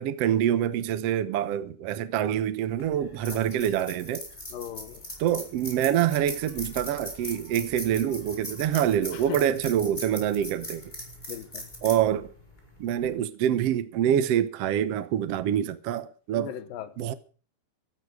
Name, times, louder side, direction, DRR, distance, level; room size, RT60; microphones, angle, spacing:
voice 1, 0.0-4.2 5.2-10.9 11.8-12.3 12.8-16.5 17.0-17.1, right 10 dB, 75° right, 1.4 m, -26 dB
sound 1, 2.7-13.1, left 1 dB, 10° left, 4.8 m, -40 dB
voice 2, 4.5-5.0 9.1-9.4 11.3-11.7 16.3-17.1, left 10 dB, 75° left, 2.7 m, -38 dB
18.0 x 13.0 x 4.8 m
omnidirectional pair, 4.2 m